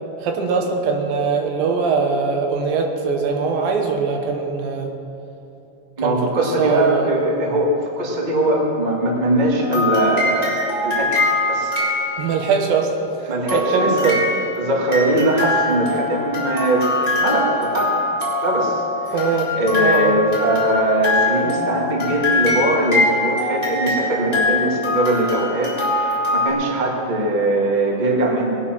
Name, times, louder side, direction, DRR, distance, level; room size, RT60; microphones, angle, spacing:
voice 1, 0.2-4.9 6.0-7.1 12.2-12.9 13.2-14.2 19.1-20.1, right 5 dB, 70° right, 3 dB, 2.7 m, -22 dB
voice 2, 6.0-11.8 13.3-14.2 14.5-17.9 18.4-19.2 19.5-28.6, right 1 dB, 50° right, -2 dB, 0.5 m, -21 dB
sound 1, 9.6-12.7 13.5-26.5, left 2 dB, 10° left, 2.9 m, -23 dB
20.0 x 9.6 x 6.1 m, 2.9 s
omnidirectional pair, 4.6 m